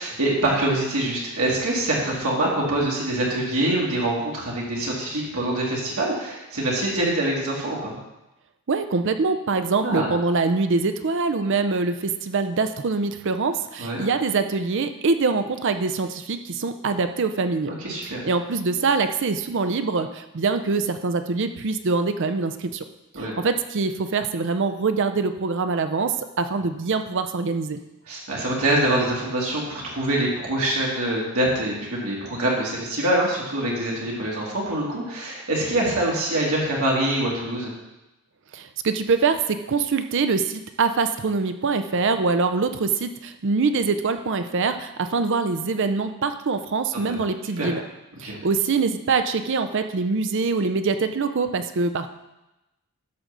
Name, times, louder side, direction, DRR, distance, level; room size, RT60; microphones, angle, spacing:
voice 1, 0.0-8.0 9.8-10.1 13.8-14.0 17.8-18.3 23.1-23.3 28.1-37.7 46.9-47.2 47.6-47.7 48.2-48.4, right 1 dB, 75° right, -4 dB, 2.3 m, -24 dB
voice 2, 8.7-17.7 18.0-22.8 23.2-27.8 38.5-47.8 48.2-52.1, right 4 dB, 55° right, 9 dB, 0.5 m, -24 dB
11.0 x 3.8 x 6.7 m, 0.97 s
head